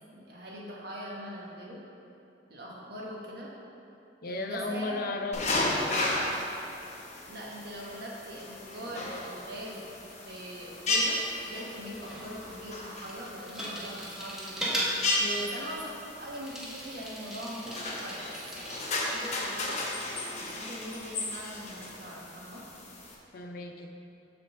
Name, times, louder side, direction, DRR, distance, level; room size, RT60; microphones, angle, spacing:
voice 1, 0.1-1.8 2.5-3.5 4.2-5.1 5.5-6.4 7.2-9.9 10.2-14.8 15.4-18.7 19.1-19.8 20.3-22.6, equal, 65° right, -4 dB, 1.3 m, -42 dB
voice 2, 4.2-6.1 15.2-15.6 23.3-23.9, left 2 dB, 55° left, 4 dB, 0.6 m, -35 dB
sound 1, 5.3-23.1, left 2 dB, 40° left, 0.9 m, -35 dB
Bicycle, 11.5-19.9, equal, 5° right, 1.0 m, -39 dB
6.6 x 3.8 x 6.1 m, 2.7 s
head